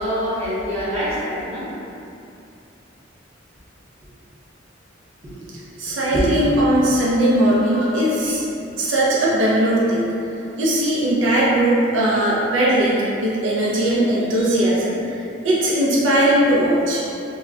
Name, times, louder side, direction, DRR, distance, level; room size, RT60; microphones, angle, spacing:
voice 1, 0.0-1.7 5.2-5.4 5.7-6.3 7.6-7.9 8.3-8.4, equal, 35° right, -10 dB, 0.7 m, -26 dB
voice 2, 5.8-8.4 8.8-10.1 10.6-17.1, right 1 dB, 80° right, -6 dB, 0.4 m, -19 dB
2.3 x 2.0 x 3.6 m, 2.6 s
head